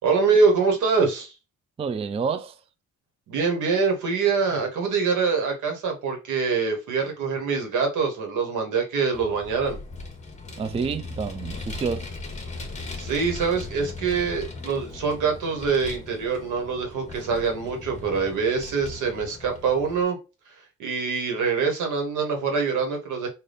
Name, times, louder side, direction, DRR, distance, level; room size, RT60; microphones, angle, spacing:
voice 1, 0.0-1.3 3.3-9.8 13.0-20.2 20.8-23.3, right 5 dB, 80° right, 1.4 m, -24 dB
voice 2, 1.8-2.6 10.6-12.1, right 5 dB, 20° right, 0.3 m, -28 dB
Vehicle, 9.1-20.0, left 3 dB, 25° left, 1.0 m, -38 dB
3.5 x 2.6 x 3.9 m
cardioid pair, 90°, 30 cm